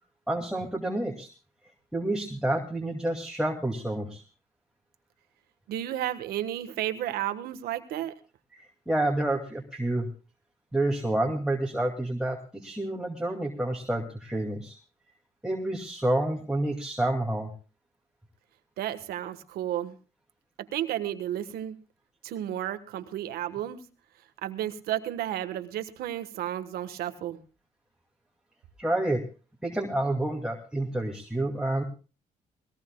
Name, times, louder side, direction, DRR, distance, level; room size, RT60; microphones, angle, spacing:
voice 1, 0.3-1.3 1.9-4.2 8.5-10.1 10.7-14.8 15.4-17.5 28.8-29.2 29.6-31.8, right 1 dB, 5° right, 0 dB, 2.5 m, -29 dB
voice 2, 5.7-8.2 18.8-20.0 20.7-21.8 22.2-23.8 24.4-27.4, right 12 dB, 85° right, 10 dB, 1.3 m, -32 dB
21.0 x 18.0 x 2.3 m, 0.33 s
supercardioid pair, 70°, 16 cm